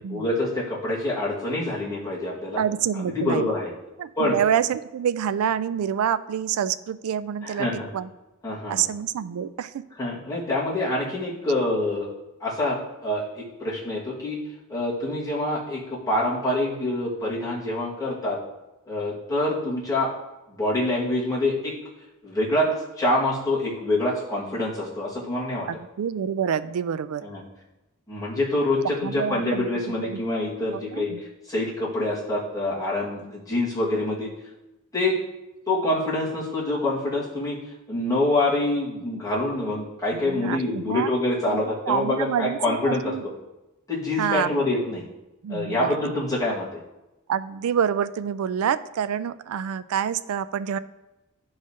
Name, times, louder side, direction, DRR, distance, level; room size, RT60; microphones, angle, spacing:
voice 1, 0.1-2.6 3.1-3.7 4.2-4.4 7.4-7.9 8.4-8.8 10.0-12.1 12.4-14.4 14.7-18.4 18.9-20.1 20.5-21.8 22.2-25.7 27.2-27.4 28.1-34.3 34.9-35.2 35.7-37.6 37.9-43.3 43.9-45.0 45.5-46.8, left 1 dB, 15° left, -7 dB, 1.8 m, -26 dB
voice 2, 2.6-3.5 4.0-8.1 8.7-9.8 25.7-27.2 29.0-29.7 30.0-30.2 30.7-31.2 40.1-41.1 41.5-41.6 41.9-43.2 44.2-44.6 45.4-46.1 47.3-50.8, right 8 dB, 75° right, 14 dB, 0.3 m, -27 dB
10.5 x 4.8 x 2.8 m, 0.99 s
head